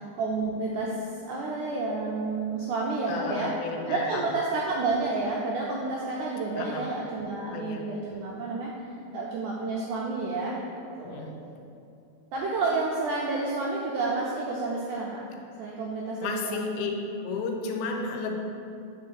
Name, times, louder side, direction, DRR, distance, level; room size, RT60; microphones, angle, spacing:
voice 1, 0.0-3.6 3.9-8.7 9.1-10.6 11.0-11.3 12.3-15.2 15.6-16.7, right 3 dB, 90° right, -4 dB, 1.8 m, -30 dB
voice 2, 3.1-4.4 6.6-6.9 7.5-7.8 11.0-11.4 16.2-16.9 17.2-18.3, left 4 dB, 85° left, 3 dB, 2.6 m, -33 dB
4.8 x 4.6 x 6.1 m, 2.6 s
omnidirectional pair, 4.2 m